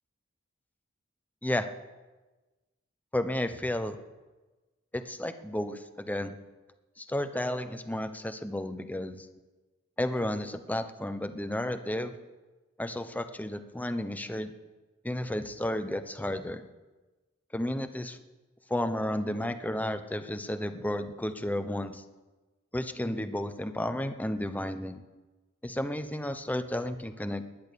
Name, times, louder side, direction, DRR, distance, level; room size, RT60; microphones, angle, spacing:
voice 1, 3.1-4.0 4.9-6.4 7.0-9.3 10.0-12.2 12.8-14.5 15.0-16.6 17.5-18.2 18.7-22.0 22.7-25.0 25.6-27.4, left 1 dB, 10° left, 9 dB, 0.8 m, -32 dB
20.5 x 10.5 x 6.9 m, 1.2 s
head